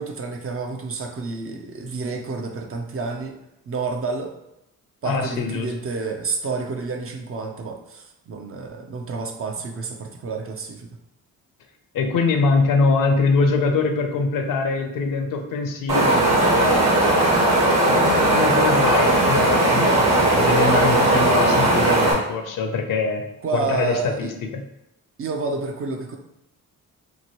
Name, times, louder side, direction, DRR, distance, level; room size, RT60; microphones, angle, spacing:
voice 1, 0.0-3.4 3.7-4.4 5.0-10.9 23.4-24.3 25.2-26.2, right 4 dB, 40° right, 3 dB, 0.5 m, -29 dB
voice 2, 5.0-5.7 11.9-17.0 17.8-23.2 23.5-24.6, left 4 dB, 65° left, 5 dB, 0.6 m, -23 dB
Wind, 15.9-22.1, right 1 dB, 60° right, 1.1 m, -18 dB
2.9 x 2.5 x 2.9 m, 0.86 s
cardioid pair, 85°, 35 cm